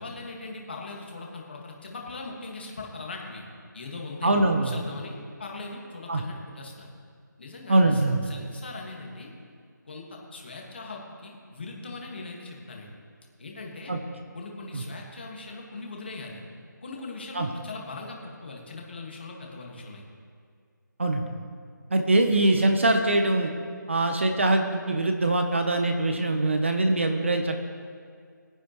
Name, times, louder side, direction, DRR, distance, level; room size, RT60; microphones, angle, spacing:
voice 1, 0.0-3.4 3.7-6.9 7.4-9.3 9.8-12.9 13.4-13.9 14.3-16.4 16.8-20.0, left 3 dB, 30° left, 0 dB, 1.7 m, -40 dB
voice 2, 4.2-4.8 6.1-6.2 7.7-8.3 13.9-14.0 14.7-14.8 17.3-17.5 21.0-21.3 21.9-23.5 23.9-27.6, right 2 dB, 40° right, 5 dB, 0.8 m, -23 dB
20.5 x 10.0 x 3.1 m, 2.1 s
figure-of-eight pair, 175°, 11 cm